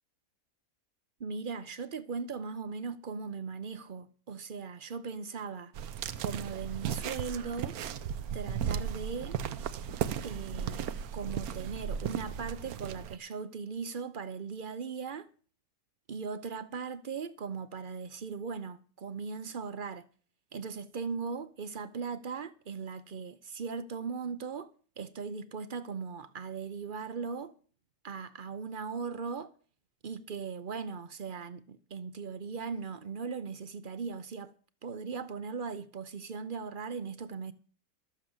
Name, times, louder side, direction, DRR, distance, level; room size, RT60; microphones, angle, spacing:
voice 1, 1.2-5.7 6.2-7.8 8.3-9.4 10.2-15.3 16.1-20.0 20.5-24.7 25.0-27.5 28.0-29.5 30.0-34.5 34.8-37.5, right 5 dB, 45° right, 0.7 m, -38 dB
sound 1, 5.8-13.2, right 8 dB, 70° right, 1.2 m, -36 dB
13.0 x 8.0 x 7.2 m
omnidirectional pair, 1.7 m